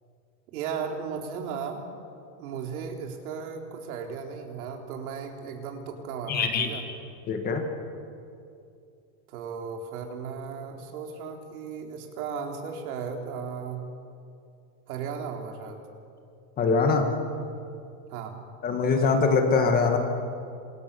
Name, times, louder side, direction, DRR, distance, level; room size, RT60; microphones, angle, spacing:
voice 1, 0.5-1.8 2.4-6.9 9.3-13.8 14.9-15.8 18.1-18.4, right 6 dB, 65° right, 3 dB, 4.2 m, -35 dB
voice 2, 6.3-6.7 7.3-7.6 16.6-17.1 18.6-20.0, left 4 dB, 20° left, 4 dB, 1.8 m, -23 dB
28.5 x 26.5 x 7.0 m, 2.5 s
supercardioid pair, 180°, 46 cm